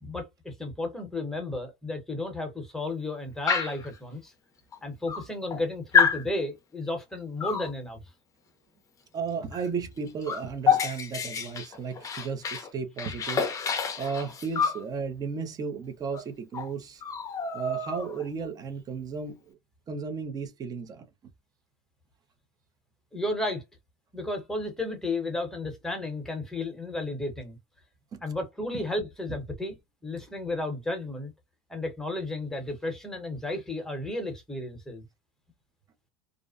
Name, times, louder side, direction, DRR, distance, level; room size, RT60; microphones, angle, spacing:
voice 1, 0.0-4.3 4.8-8.0 23.1-23.6 24.1-27.6 28.2-29.7 30.0-31.3 31.7-35.0, left 2 dB, 5° left, 1.0 m, -33 dB
Dog, 3.5-3.9 4.7-4.8 5.1-5.6 5.9-6.2 7.4-7.7 9.5-9.7 10.0-12.7 13.0-14.8 16.1-16.2 16.5-16.7 17.0-18.3, left 6 dB, 25° left, 0.6 m, -27 dB
voice 2, 9.1-13.4 14.0-17.0 17.5-19.6 19.9-21.1 28.1-28.2 28.7-28.8, right 5 dB, 30° right, 0.6 m, -34 dB
2.5 x 2.0 x 2.4 m
supercardioid pair, 115°, 13 cm